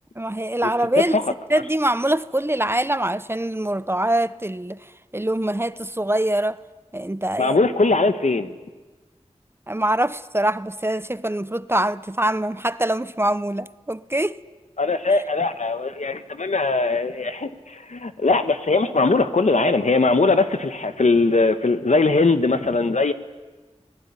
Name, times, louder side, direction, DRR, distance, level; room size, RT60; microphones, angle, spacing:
voice 1, 0.2-1.2 1.5-6.6 6.9-7.6 9.7-14.4, right 1 dB, 20° right, 0.7 m, -24 dB
voice 2, 7.4-8.5 14.8-23.1, left 3 dB, 90° left, 1.3 m, -20 dB
26.5 x 19.5 x 9.8 m
wide cardioid pair, 45°, 12 cm